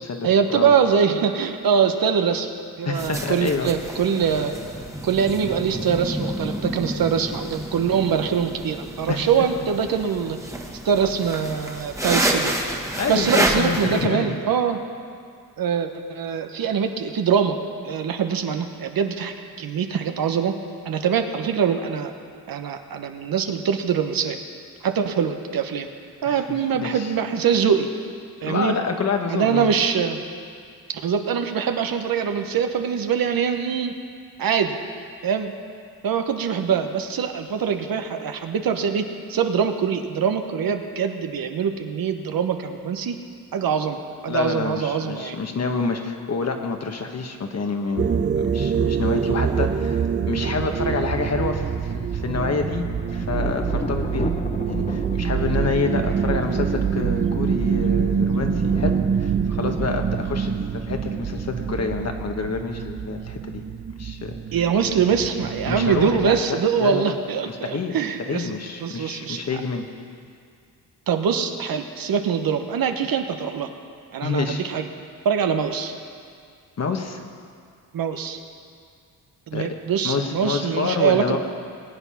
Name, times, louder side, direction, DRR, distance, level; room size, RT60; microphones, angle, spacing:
voice 1, 0.2-2.5 2.8-4.5 5.0-10.4 10.8-12.5 13.1-14.8 15.6-17.6 17.8-20.5 20.8-22.1 22.5-24.4 24.8-25.9 26.2-27.9 28.4-28.7 29.3-30.2 30.9-33.9 34.4-34.8 35.2-35.5 36.0-43.2 43.5-45.4 64.5-68.5 68.8-69.4 71.1-73.7 74.1-74.9 75.2-75.9 77.9-78.4 79.5-81.4, right 7 dB, 65° right, 6 dB, 1.2 m, -23 dB
voice 2, 2.8-3.7 9.1-9.3 13.0-14.4 26.2-26.4 26.7-27.1 28.4-29.8 44.3-48.1 48.4-54.3 54.7-63.6 64.0-64.3 65.6-67.1 67.5-69.9 74.2-74.6 76.8-77.2 79.5-79.8 80.0-81.4, left 4 dB, 45° left, 4 dB, 1.5 m, -27 dB
sound 1, 2.9-14.1, right 1 dB, 10° right, 1.6 m, -29 dB
sound 2, 48.0-66.4, right 6 dB, 30° right, 0.6 m, -25 dB
Thunder, 51.8-61.3, left 3 dB, 20° left, 0.6 m, -36 dB
20.5 x 8.4 x 5.8 m, 2.2 s
cardioid pair, 85°, 38 cm